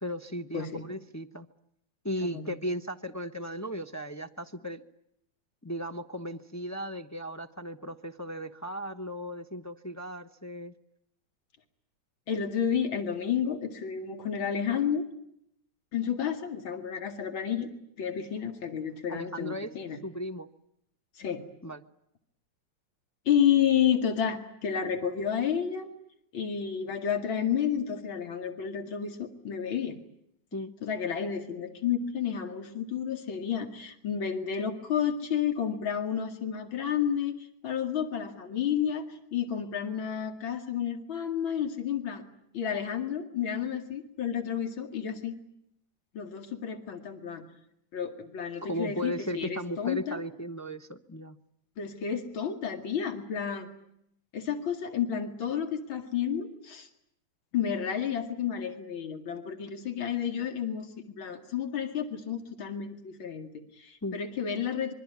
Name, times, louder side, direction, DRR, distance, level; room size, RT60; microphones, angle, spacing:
voice 1, 0.0-1.5 2.0-4.8 5.6-10.7 18.3-18.5 19.1-19.7 20.0-20.5 21.6-21.8 30.5-30.7 48.6-51.4 64.0-64.2, equal, 20° left, 6 dB, 0.4 m, -36 dB
voice 2, 0.5-0.8 2.2-2.5 12.3-15.0 15.9-17.7 18.0-20.0 21.1-21.4 23.3-25.9 26.3-30.0 30.8-42.2 42.5-45.4 46.1-47.4 47.9-50.2 51.8-53.7 54.3-56.9 57.5-64.9, left 8 dB, 80° left, 6 dB, 3.0 m, -31 dB
26.0 x 23.5 x 9.5 m, 0.76 s
omnidirectional pair, 2.1 m